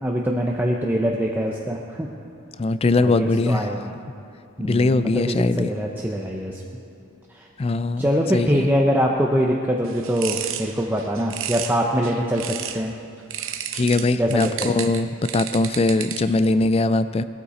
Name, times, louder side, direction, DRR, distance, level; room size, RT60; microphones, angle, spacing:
voice 1, 0.0-2.1 2.9-3.9 4.6-6.6 7.3-7.5 8.0-12.9 14.1-14.8, equal, 10° right, -1 dB, 0.7 m, -23 dB
voice 2, 2.6-3.7 4.6-5.7 7.6-8.0 8.3-8.7 13.7-17.2, left 2 dB, 25° left, 13 dB, 0.3 m, -21 dB
sound 1, 9.8-12.9 13.3-16.5, right 10 dB, 60° right, 0.8 m, -32 dB
19.5 x 13.0 x 4.2 m, 2.5 s
head